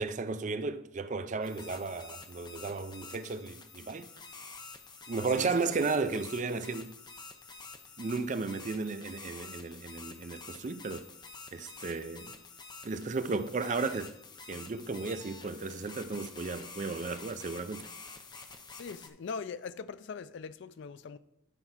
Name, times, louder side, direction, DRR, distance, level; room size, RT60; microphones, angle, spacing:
voice 1, 0.0-4.1 5.1-6.9 8.0-11.1 11.5-12.3 12.8-14.1 14.5-17.8, right 4 dB, 35° right, 0.4 m, -34 dB
sound 1, 1.4-19.1, left 4 dB, 20° left, 0.7 m, -48 dB
voice 2, 18.7-21.2, left 5 dB, 60° left, 0.4 m, -41 dB
9.9 x 4.5 x 5.7 m
head